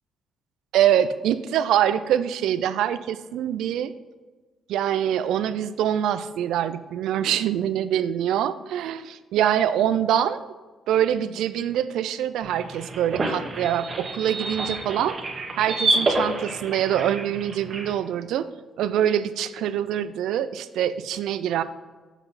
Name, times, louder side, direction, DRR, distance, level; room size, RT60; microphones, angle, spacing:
voice 1, 0.7-3.9 4.7-10.5 10.9-15.2 15.6-18.5 18.8-21.6, right 10 dB, 85° right, 13 dB, 0.4 m, -24 dB
sound 1, 12.4-17.9, right 2 dB, 45° right, 1.5 m, -28 dB
7.2 x 5.7 x 4.0 m, 1.3 s
cardioid pair, 90°, 0 cm